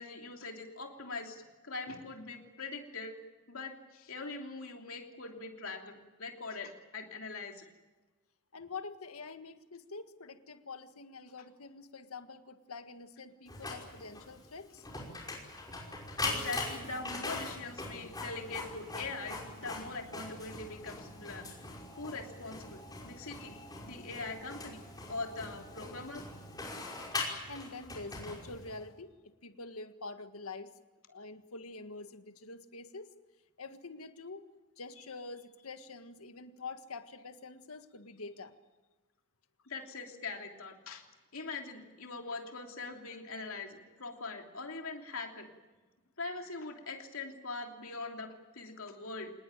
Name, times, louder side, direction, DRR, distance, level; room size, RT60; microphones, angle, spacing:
voice 1, 0.0-3.2 3.5-7.6 16.2-21.5 22.0-24.8 25.1-26.2 39.6-41.0 41.3-45.5 46.2-49.3, left 3 dB, 70° left, 3 dB, 3.1 m, -42 dB
voice 2, 8.5-14.9 27.5-30.7 31.1-33.1 33.6-34.4 34.8-38.5, left 3 dB, 90° left, 8 dB, 1.7 m, -46 dB
Printer, 13.5-28.8, left 2 dB, 20° left, 5.5 m, -42 dB
26.0 x 20.0 x 9.1 m, 1.2 s
head